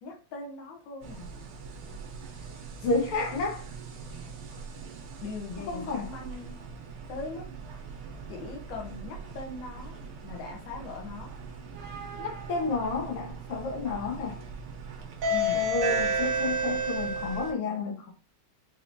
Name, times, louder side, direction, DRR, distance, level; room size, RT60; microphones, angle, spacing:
voice 1, 0.0-1.3 5.2-6.5 7.1-7.5 8.3-10.0 10.2-11.3 15.3-15.7, left 3 dB, 65° left, 1.6 m, -40 dB
sound 1, 1.0-17.5, right 1 dB, 65° right, 1.3 m, -35 dB
voice 2, 2.8-3.6 5.7-6.1 12.2-14.4 15.5-18.1, left 3 dB, 85° left, 2.0 m, -31 dB
4.6 x 3.0 x 2.5 m
omnidirectional pair, 2.3 m